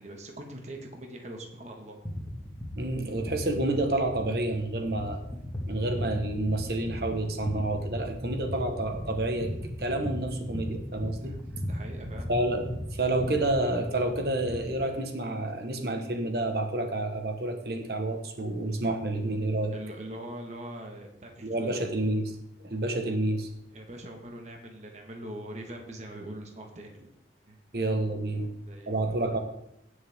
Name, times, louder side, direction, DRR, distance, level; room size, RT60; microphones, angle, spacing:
voice 1, 0.0-2.0 11.2-11.4 11.6-12.3 19.7-21.8 23.7-27.1 27.5-27.6 28.7-29.4, right 1 dB, 40° right, 2 dB, 1.5 m, -42 dB
sound 1, 2.0-14.7, equal, 20° left, 1.9 m, -37 dB
voice 2, 2.7-5.2 5.7-9.5 9.8-11.4 12.3-12.6 12.9-19.7 21.4-22.4 22.6-23.5 27.7-28.5 28.9-29.4, right 2 dB, 55° right, 5 dB, 1.3 m, -29 dB
17.0 x 6.7 x 3.6 m, 0.80 s
head